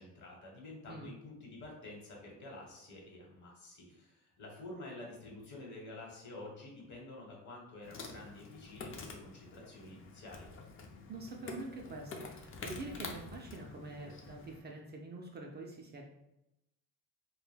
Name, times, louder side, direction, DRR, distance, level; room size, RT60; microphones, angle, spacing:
voice 1, 0.0-10.5, left 2 dB, 55° left, -1 dB, 1.0 m, -49 dB
Insect, 7.8-14.6, left 4 dB, 40° left, 0.4 m, -48 dB
voice 2, 11.1-16.0, right 2 dB, 30° right, 0 dB, 0.4 m, -46 dB
2.1 x 2.1 x 3.2 m, 0.88 s
cardioid pair, 90°, 35 cm